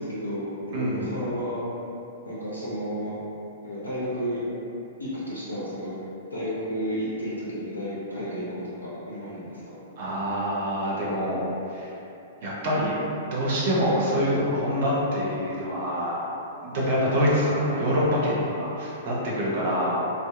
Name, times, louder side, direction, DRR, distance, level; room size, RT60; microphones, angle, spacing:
voice 1, 0.0-1.6 2.3-3.2 3.6-4.4 5.0-5.9 6.3-9.8, equal, 80° left, -8 dB, 0.5 m, -32 dB
voice 2, 0.7-1.2 10.0-11.9 12.4-13.0 13.2-16.2 16.6-20.1, equal, 50° right, -6 dB, 0.6 m, -25 dB
2.6 x 2.4 x 2.2 m, 2.9 s
figure-of-eight pair, 105°, 0 cm